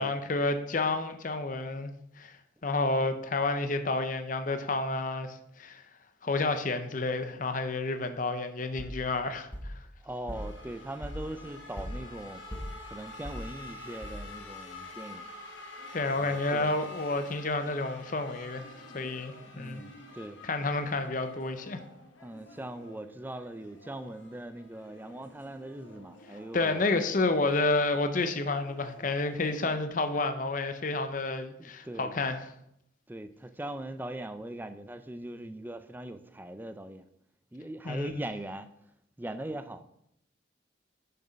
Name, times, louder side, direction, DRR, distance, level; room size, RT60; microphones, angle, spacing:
voice 1, 0.0-1.9 2.2-2.4 2.6-5.8 6.2-9.7 15.9-18.6 18.9-19.8 20.4-21.8 26.5-32.5 37.8-38.1, left 3 dB, 40° left, 0.6 m, -30 dB
sound 1, 8.8-14.6, equal, 10° left, 1.2 m, -42 dB
voice 2, 10.0-12.4 12.9-15.3 16.2-16.8 19.5-20.4 22.2-26.9 31.6-32.1 33.1-37.1 37.5-38.7 39.2-39.8, right 1 dB, 10° right, 0.4 m, -40 dB
sound 2, 10.3-29.8, left 2 dB, 75° left, 1.2 m, -49 dB
6.7 x 6.5 x 5.2 m
head